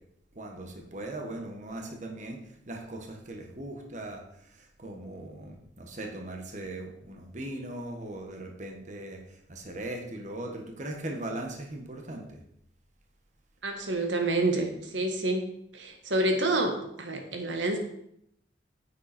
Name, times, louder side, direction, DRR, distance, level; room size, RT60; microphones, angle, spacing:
voice 1, 0.3-2.4 2.7-12.4, right 1 dB, 40° right, 2 dB, 1.5 m, -39 dB
voice 2, 13.6-15.4 15.7-17.8, right 2 dB, 80° right, 4 dB, 1.5 m, -28 dB
9.5 x 8.7 x 4.5 m, 0.73 s
head